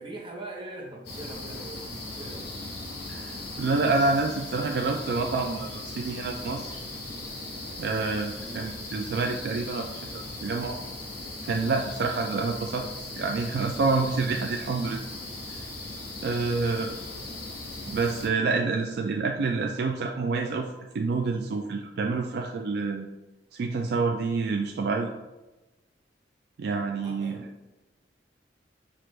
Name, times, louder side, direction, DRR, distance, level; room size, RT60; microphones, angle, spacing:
voice 1, 0.0-2.5 8.4-8.7 27.0-27.5, right 2 dB, 30° right, -1 dB, 0.9 m, -42 dB
sound 1, 1.1-18.3, left 2 dB, 60° left, 1.2 m, -38 dB
voice 2, 3.1-6.8 7.8-10.8 11.4-12.8 13.1-15.0 16.2-16.9 17.9-23.1 23.5-25.1 26.6-27.4, right 3 dB, 65° right, 3 dB, 0.3 m, -28 dB
5.9 x 2.5 x 3.1 m, 1.1 s
head